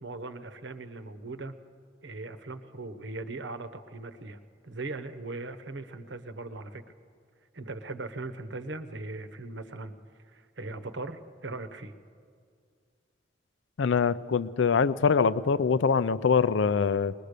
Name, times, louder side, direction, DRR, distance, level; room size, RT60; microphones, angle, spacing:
voice 1, 0.0-1.6 2.0-4.4 4.6-6.8 7.5-9.9 10.3-11.9, right 2 dB, 75° right, 9 dB, 1.1 m, -39 dB
voice 2, 13.8-17.1, left 5 dB, 85° left, 16 dB, 0.5 m, -24 dB
21.0 x 20.5 x 6.7 m, 2.2 s
head